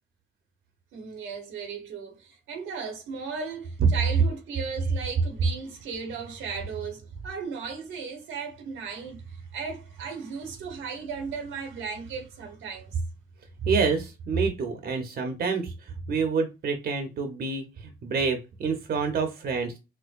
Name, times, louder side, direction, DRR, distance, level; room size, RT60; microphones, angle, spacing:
voice 1, 0.9-13.0, right 5 dB, 85° right, 1.1 m, -36 dB
voice 2, 13.7-19.8, right 5 dB, 50° right, 0.8 m, -28 dB
4.5 x 2.1 x 2.5 m
cardioid pair, 90°, 20 cm